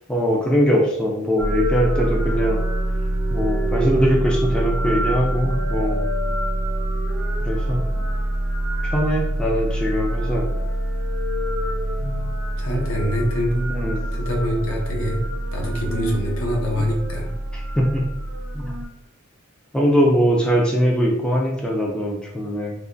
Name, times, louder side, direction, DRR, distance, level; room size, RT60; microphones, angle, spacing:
voice 1, 0.1-2.6 3.3-6.0 7.5-7.8 8.8-10.5 13.7-14.0 16.8-16.9 17.8-18.0 18.5-18.7 19.7-22.7, equal, 5° left, -1 dB, 0.3 m, -21 dB
sound 1, 1.4-18.9, right 1 dB, 65° right, 0.7 m, -25 dB
voice 2, 12.6-13.7 14.1-15.2 15.5-17.3, equal, 70° left, -1 dB, 0.8 m, -25 dB
3.2 x 2.1 x 2.5 m, 0.88 s
head